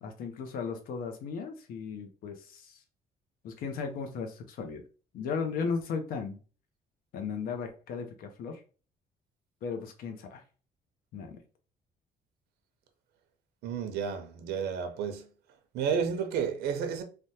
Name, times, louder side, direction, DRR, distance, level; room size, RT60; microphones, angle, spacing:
voice 1, 0.0-2.8 3.4-4.8 5.1-6.4 7.1-8.6 9.6-10.4 11.1-11.4, left 5 dB, 65° left, 0.7 m, -36 dB
voice 2, 13.6-15.3 15.7-17.0, right 7 dB, 90° right, 0.6 m, -31 dB
3.3 x 2.2 x 2.7 m
cardioid pair, 170°, 16 cm